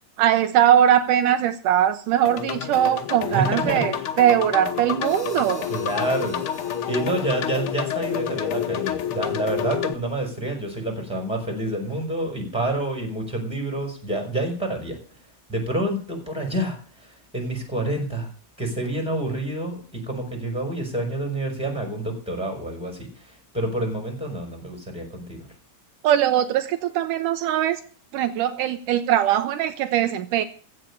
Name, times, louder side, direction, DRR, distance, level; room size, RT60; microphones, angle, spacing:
voice 1, 0.2-5.7 26.0-27.8 28.1-30.4, right 10 dB, 80° right, 9 dB, 2.2 m, -21 dB
sound 1, 2.2-9.9, left 9 dB, 85° left, 1.1 m, -29 dB
voice 2, 3.3-4.0 5.7-6.4 6.9-15.0 15.5-18.3 18.6-25.5, right 1 dB, ahead, 3 dB, 4.6 m, -28 dB
Hi-hat, 5.0-9.2, left 1 dB, 20° left, 2.5 m, -47 dB
15.5 x 5.7 x 9.9 m, 0.43 s
omnidirectional pair, 3.8 m